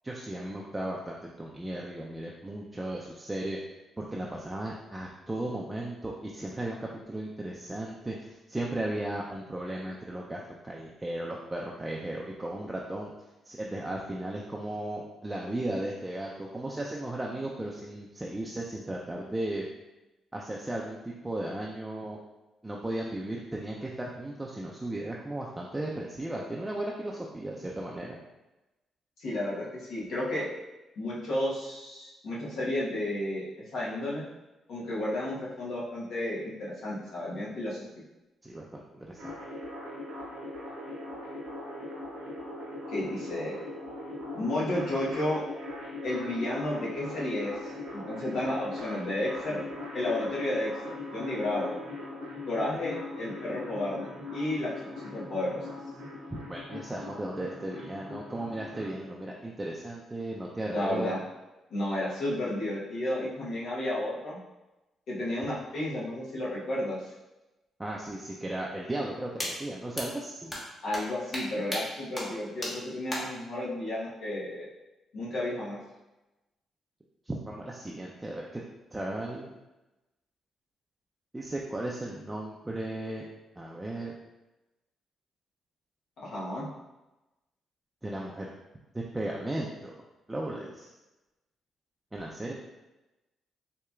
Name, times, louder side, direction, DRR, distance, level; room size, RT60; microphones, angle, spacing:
voice 1, 0.0-3.6 4.0-13.1 13.4-19.6 20.3-22.2 22.6-28.2 38.4-39.3 56.3-61.1 67.8-70.5 77.3-78.6 78.9-79.5 81.3-83.3 83.6-84.1 88.0-88.5 88.9-89.9 90.3-90.9 92.1-92.5, right 1 dB, 15° right, -3 dB, 0.5 m, -36 dB
voice 2, 29.2-30.4 31.0-34.2 34.7-37.8 42.9-43.6 44.3-45.4 46.0-49.6 49.9-50.7 51.1-51.8 52.5-55.6 60.7-61.2 61.7-64.4 65.1-67.1 70.8-74.6 75.1-75.8 86.2-86.6, left 1 dB, 70° left, -6 dB, 1.2 m, -32 dB
sound 1, 39.2-58.9, left 2 dB, 80° right, 0.8 m, -40 dB
sound 2, 69.4-69.5 69.9-70.1 70.5-70.6 70.9-71.0 71.3-71.4 71.7-71.8 72.2-72.3 72.6-72.7 73.1-73.2, left 1 dB, 30° left, 1.2 m, -33 dB
4.2 x 2.8 x 2.4 m, 1.0 s
supercardioid pair, 55°, 0 cm